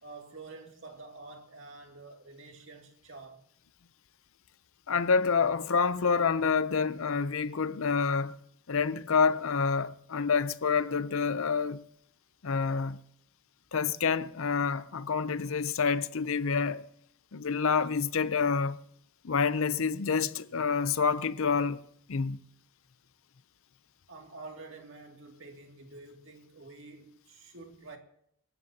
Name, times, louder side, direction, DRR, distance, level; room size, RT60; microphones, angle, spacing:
voice 1, 0.0-3.4 24.1-28.0, right 3 dB, 60° right, 2.3 m, -48 dB
voice 2, 4.9-8.4 8.7-11.8 12.4-13.0 13.7-16.8 17.3-18.8 19.2-21.8 22.1-22.4, left 5 dB, 70° left, 0.6 m, -28 dB
25.0 x 15.0 x 2.8 m
head